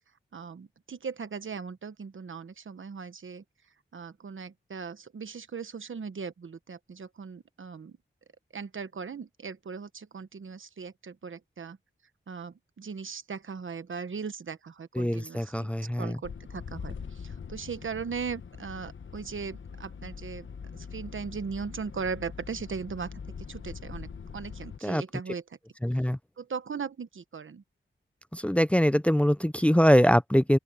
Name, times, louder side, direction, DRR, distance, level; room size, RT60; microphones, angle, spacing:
voice 1, 0.3-3.4 3.9-8.0 8.5-11.8 12.3-20.5 20.7-23.1 23.5-25.4 26.4-27.6, right 5 dB, 75° right, 1.2 m, -38 dB
voice 2, 14.9-16.2 24.8-25.0 25.8-26.2 28.3-30.6, equal, 5° left, 0.6 m, -23 dB
sound 1, 16.2-24.8, left 6 dB, 70° left, 1.1 m, -42 dB
open air
wide cardioid pair, 70°, 20 cm